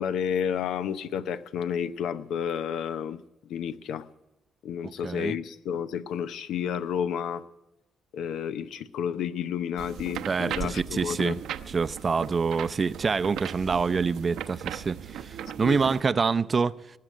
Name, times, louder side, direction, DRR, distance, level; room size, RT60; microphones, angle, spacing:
voice 1, 0.0-3.2 3.4-4.1 4.6-7.4 8.1-11.4 15.6-15.8, left 8 dB, 80° left, 0.7 m, -31 dB
voice 2, 4.8-5.4 10.3-11.4 11.7-16.8, right 5 dB, 35° right, 0.5 m, -26 dB
sound 1, 9.8-16.0, right 10 dB, 80° right, 0.8 m, -38 dB
19.0 x 7.7 x 9.1 m
cardioid pair, 90°, 0 cm